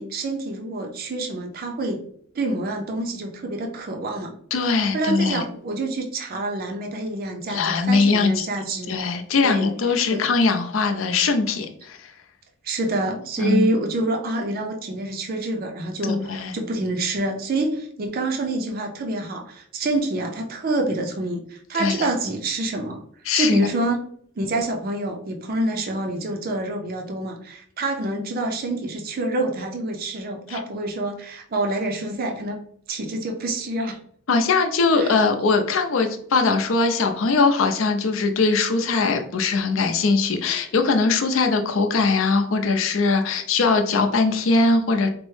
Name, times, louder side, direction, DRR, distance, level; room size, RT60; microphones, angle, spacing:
voice 1, 0.0-2.1 2.3-4.4 4.9-9.0 9.4-9.7 10.1-10.2 12.6-23.0 23.3-24.0 24.4-32.6 32.9-34.0 34.9-35.2, right 2 dB, 45° right, 3 dB, 0.4 m, -27 dB
voice 2, 4.5-5.4 7.5-8.5 8.9-12.1 13.4-13.7 16.1-16.5 21.7-22.1 23.3-23.7 30.5-30.6 34.3-45.1, left 4 dB, 70° left, 5 dB, 0.5 m, -21 dB
4.3 x 2.0 x 3.1 m, 0.63 s
head